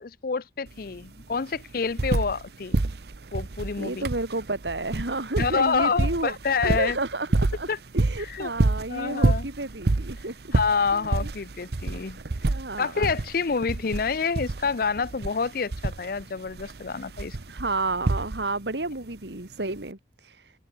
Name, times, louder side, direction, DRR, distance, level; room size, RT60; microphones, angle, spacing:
voice 1, 0.0-2.8 3.3-4.1 5.4-7.0 7.7-7.8 8.2-8.5 8.9-9.5 10.5-12.2 12.8-17.4, left 5 dB, 55° left, 0.5 m, -27 dB
sound 1, 0.7-0.8 1.0-2.5 2.7-18.7 19.8-19.9, right 2 dB, 60° right, 0.8 m, -28 dB
voice 2, 3.8-6.3 6.6-10.3 10.9-11.1 12.4-13.1 17.5-20.5, right 2 dB, 75° right, 3.0 m, -31 dB
head